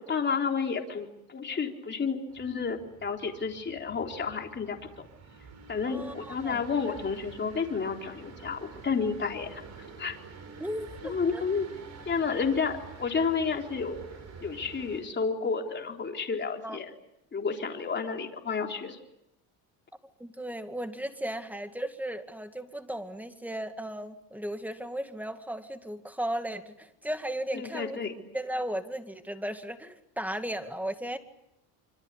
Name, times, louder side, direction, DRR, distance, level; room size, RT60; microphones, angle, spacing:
voice 1, 0.1-4.8 5.7-9.6 10.0-10.1 11.0-11.7 12.1-14.0 14.4-16.9 17.3-19.0 27.5-28.2, left 5 dB, 25° left, 2 dB, 3.9 m, -31 dB
sound 1, 2.3-15.0, right 5 dB, 40° right, 7.3 m, -48 dB
voice 2, 5.8-6.6 10.6-11.4 16.6-16.8 20.2-28.0 28.3-31.2, right 1 dB, 5° right, 8 dB, 2.2 m, -36 dB
26.0 x 25.5 x 8.4 m, 0.82 s
cardioid pair, 115°, 39 cm